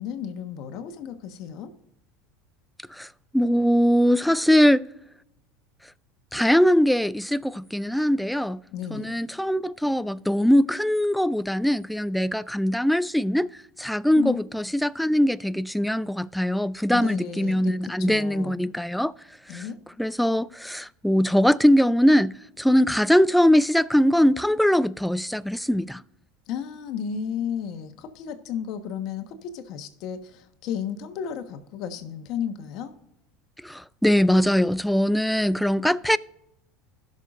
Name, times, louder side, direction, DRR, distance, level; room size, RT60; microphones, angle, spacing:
voice 1, 0.0-1.7 8.7-9.2 14.2-14.4 16.9-17.7 18.0-18.6 19.5-19.8 26.5-32.9, left 8 dB, 60° left, 1.2 m, -33 dB
voice 2, 3.3-4.8 6.3-8.6 8.9-13.5 13.8-19.1 19.5-19.6 20.0-26.0 33.6-36.2, equal, ahead, 0.3 m, -21 dB
16.5 x 6.4 x 2.5 m
supercardioid pair, 100°, 0 cm